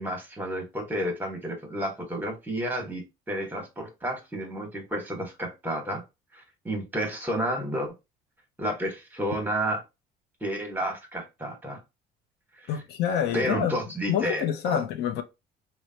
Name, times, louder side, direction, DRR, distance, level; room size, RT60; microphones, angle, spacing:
voice 1, 0.0-6.0 6.3-7.9 8.6-9.8 10.4-11.8 12.6-12.7 13.3-14.8, equal, 10° right, 1.0 m, -31 dB
voice 2, 12.7-13.8 14.1-15.2, left 9 dB, 75° left, 0.5 m, -27 dB
3.1 x 2.0 x 2.6 m
cardioid pair, 110°, 17 cm